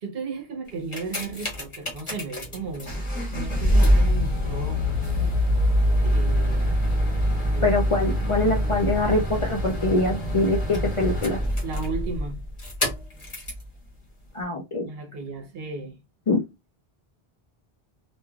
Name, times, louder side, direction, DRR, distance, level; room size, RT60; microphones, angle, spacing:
voice 1, 0.0-3.0 3.3-4.9 6.0-6.7 7.5-7.7 11.6-12.4 14.8-16.0, right 4 dB, 70° right, 1.0 m, -35 dB
sound 1, 0.7-13.7 14.4-14.5, equal, 30° left, 1.1 m, -24 dB
voice 2, 7.6-11.4 14.3-14.9 16.3-16.4, left 2 dB, 50° left, 0.4 m, -24 dB
3.1 x 2.4 x 2.3 m
omnidirectional pair, 1.1 m